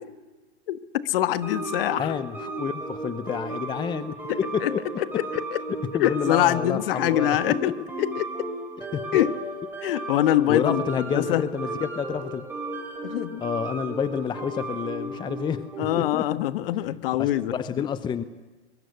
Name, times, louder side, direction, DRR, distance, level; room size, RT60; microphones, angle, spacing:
voice 1, 0.7-2.1 4.3-5.6 5.9-8.3 9.1-9.4 9.8-11.4 13.0-13.4 15.8-17.9, left 13 dB, 55° left, 1.4 m, -25 dB
sound 1, 1.4-16.2, right 2 dB, 5° right, 5.8 m, -35 dB
voice 2, 2.0-4.8 5.7-7.5 8.9-9.0 10.5-12.5 13.4-15.7 16.1-16.3 17.2-18.2, left 7 dB, 15° left, 0.8 m, -29 dB
23.0 x 23.0 x 8.1 m
hypercardioid pair, 130°, 34 cm